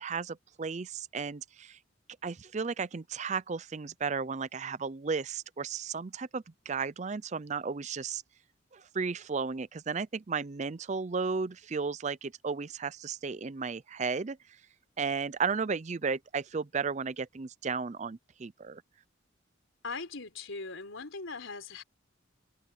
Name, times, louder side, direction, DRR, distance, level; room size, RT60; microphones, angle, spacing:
voice 1, 0.0-1.8 2.2-8.2 8.7-14.4 15.0-18.8, right 5 dB, 35° right, 0.5 m, -34 dB
voice 2, 19.8-21.8, left 4 dB, 80° left, 4.0 m, -40 dB
head